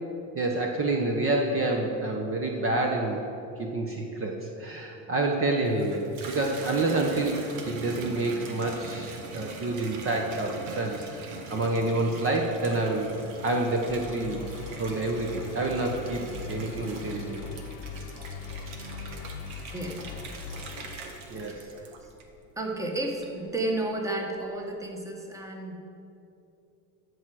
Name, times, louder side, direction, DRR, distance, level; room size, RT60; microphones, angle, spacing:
voice 1, 0.3-3.2 3.6-11.2 11.5-13.1 13.4-14.5 14.8-16.2 16.5-17.4 21.3-21.7, right 2 dB, 30° right, 1 dB, 1.0 m, -28 dB
Water tap faucet / Bathtub (filling or washing), 5.6-22.5 23.0-23.6, right 3 dB, 90° right, 1.4 m, -42 dB
sound 1, 13.9-21.0, left 6 dB, 60° left, 0.8 m, -40 dB
voice 2, 19.7-20.2 21.3-22.1 22.6-25.8, right 2 dB, 10° right, 1 dB, 1.3 m, -33 dB
12.5 x 4.8 x 7.6 m, 2.8 s
supercardioid pair, 120°, 41 cm